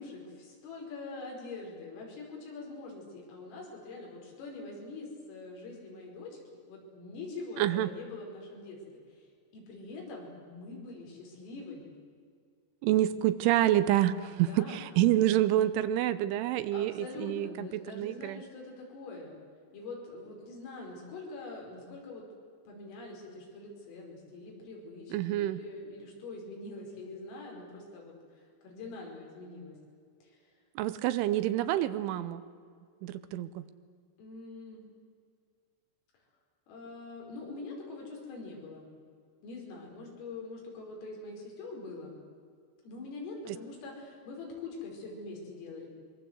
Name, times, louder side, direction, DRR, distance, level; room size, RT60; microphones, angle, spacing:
voice 1, 0.0-6.4 6.7-8.8 9.1-11.9 14.3-14.8 16.7-19.3 19.7-22.2 22.7-29.8 30.2-30.4 34.2-34.8 36.7-38.9 39.4-42.1 42.8-45.9, left 3 dB, 90° left, -1 dB, 7.7 m, -44 dB
voice 2, 7.6-7.9 12.8-18.4 25.1-25.6 30.8-32.4 33.0-33.6, right 13 dB, 80° right, 13 dB, 3.1 m, -27 dB
24.5 x 23.0 x 8.1 m, 2.1 s
omnidirectional pair, 5.8 m